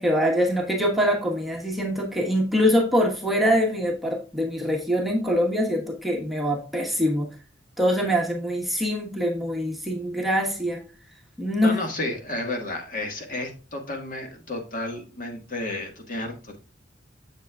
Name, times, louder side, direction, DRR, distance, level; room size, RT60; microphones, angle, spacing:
voice 1, 0.0-7.3 7.8-10.8 11.4-11.8, equal, ahead, 0 dB, 1.2 m, -24 dB
voice 2, 11.6-16.6, left 2 dB, 45° left, 4 dB, 1.6 m, -32 dB
7.4 x 7.3 x 2.3 m, 0.34 s
head